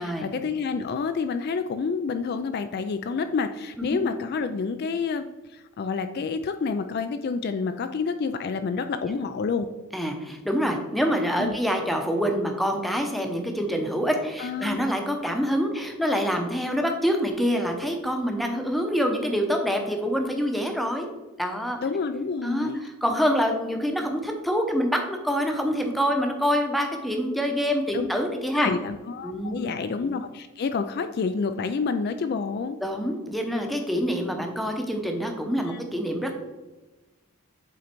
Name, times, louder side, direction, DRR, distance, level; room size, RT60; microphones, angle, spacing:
voice 1, 0.0-9.7 11.4-11.6 14.4-14.8 21.8-22.8 27.9-28.1 28.5-32.8 35.7-35.8, left 5 dB, 45° left, 9 dB, 0.3 m, -28 dB
voice 2, 9.9-21.1 21.4-21.8 22.4-28.7 29.2-29.7 32.8-36.4, equal, ahead, 3 dB, 0.8 m, -26 dB
8.4 x 3.9 x 4.4 m, 1.1 s
head